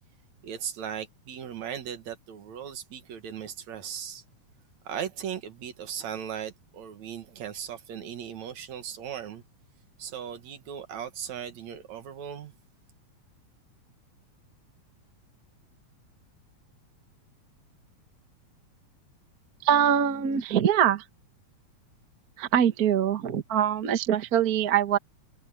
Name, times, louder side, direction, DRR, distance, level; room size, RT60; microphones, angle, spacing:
voice 1, 0.4-4.2 4.8-9.4 10.0-12.5, right 9 dB, 70° right, 2.9 m, -37 dB
voice 2, 19.6-21.0 22.4-25.0, right 9 dB, 50° right, 1.1 m, -23 dB
omnidirectional pair, 3.4 m